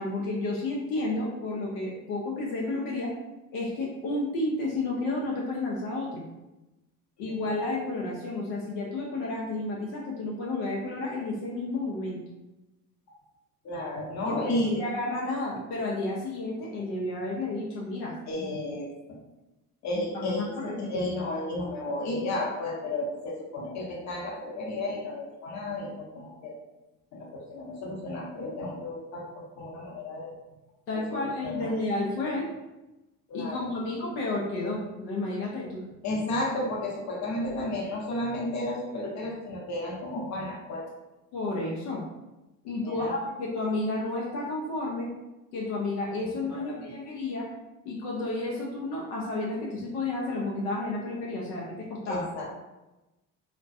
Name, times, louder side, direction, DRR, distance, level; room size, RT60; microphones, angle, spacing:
voice 1, 0.0-3.1 3.5-6.2 7.2-12.2 14.2-18.5 20.1-20.9 30.9-32.5 33.3-35.8 41.3-42.0 42.6-45.1 45.5-47.5 47.8-52.2, left 2 dB, 70° left, -3 dB, 0.6 m, -31 dB
voice 2, 13.6-14.8 18.3-18.9 19.8-26.5 27.1-30.3 30.9-31.8 33.3-33.7 36.0-40.9 42.8-43.1 46.2-47.0 52.1-52.5, left 1 dB, 40° left, -2 dB, 0.8 m, -33 dB
2.2 x 2.2 x 2.6 m, 1.0 s
hypercardioid pair, 60°, 44 cm